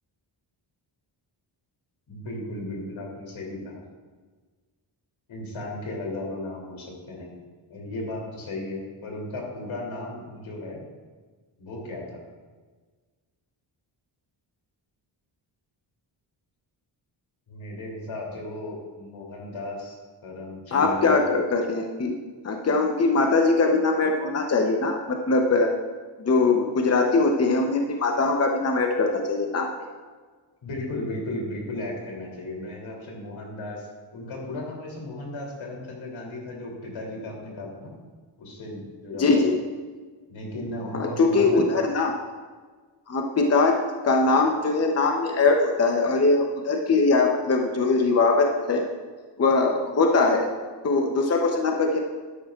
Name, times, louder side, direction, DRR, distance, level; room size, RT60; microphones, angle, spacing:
voice 1, 2.1-3.8 5.3-7.4 7.7-10.8 11.6-12.2 17.5-20.0 20.2-21.3 30.6-33.9 34.1-37.9 38.4-39.5 40.3-41.6, left 2 dB, 85° left, -2 dB, 3.0 m, -35 dB
voice 2, 20.7-22.2 22.4-25.7 26.2-29.7 39.2-39.5 40.9-42.1 43.1-43.8 44.0-48.8 49.4-50.5 50.8-52.0, left 3 dB, 35° left, 2 dB, 0.8 m, -21 dB
12.0 x 10.5 x 2.4 m, 1.4 s
wide cardioid pair, 160°, 46 cm